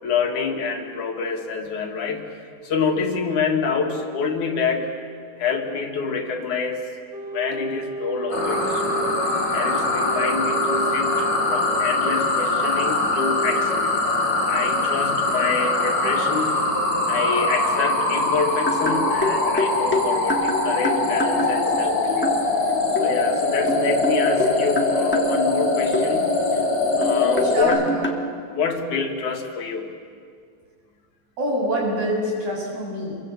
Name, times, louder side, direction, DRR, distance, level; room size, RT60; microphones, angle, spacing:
voice 1, 0.0-4.9 5.4-6.8 7.3-9.1 9.5-14.0 14.5-16.6 17.1-22.4 23.0-26.7 27.0-27.9 28.5-29.9, left 5 dB, 90° left, 3 dB, 3.6 m, -27 dB
Wind instrument woodwind instrument, 7.1-12.2, right 2 dB, 30° left, 5.5 m, -32 dB
sound 1, 8.3-27.6, left 2 dB, 65° left, 5.3 m, -22 dB
sound 2, 18.7-21.9 22.2-22.4 23.0-23.1 23.7-25.3 25.9-26.1 27.0-28.2, left 1 dB, 10° left, 0.7 m, -26 dB
voice 2, 27.5-28.1 31.4-33.2, equal, 65° right, -3 dB, 8.8 m, -25 dB
26.5 x 23.5 x 7.9 m, 2.2 s
omnidirectional pair, 3.3 m